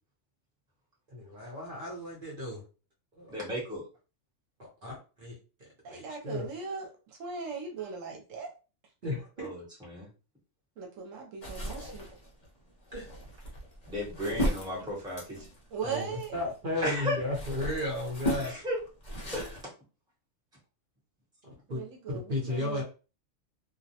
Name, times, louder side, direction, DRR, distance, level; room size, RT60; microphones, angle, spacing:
voice 1, 1.1-2.6 3.2-3.3 4.8-4.9 5.2-5.4 5.9-6.5 9.0-9.5 12.9-13.1 15.8-18.5 21.7-21.8 22.1-22.8, left 1 dB, 50° right, -3 dB, 0.8 m, -34 dB
voice 2, 3.3-3.8 9.4-10.1 13.9-15.5 16.8-17.2 18.4-18.8 19.3-19.6, left 1 dB, 5° right, -5 dB, 0.9 m, -35 dB
voice 3, 5.8-8.5 10.8-12.0 15.7-16.3 21.7-22.8, right 5 dB, 75° right, 2 dB, 1.0 m, -39 dB
sound 1, 11.4-16.6 17.0-19.6, equal, 45° left, 0.7 m, -36 dB
2.3 x 2.0 x 2.7 m, 0.34 s
omnidirectional pair, 1.4 m